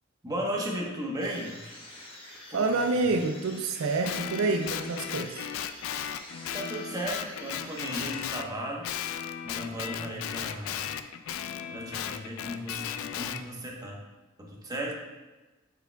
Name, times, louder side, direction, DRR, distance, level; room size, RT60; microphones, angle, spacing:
voice 1, 0.2-1.5 2.5-3.0 6.5-8.9 9.4-10.8 11.7-14.0 14.4-14.9, right 1 dB, 20° right, -2 dB, 1.0 m, -35 dB
sound 1, 1.2-8.7, left 1 dB, 25° left, 1.2 m, -47 dB
voice 2, 2.5-5.5, right 3 dB, 85° right, 6 dB, 0.5 m, -27 dB
Guitar, 4.0-8.5 8.8-13.4, left 9 dB, 75° left, 0.3 m, -36 dB
8.9 x 4.9 x 2.2 m, 1.2 s
head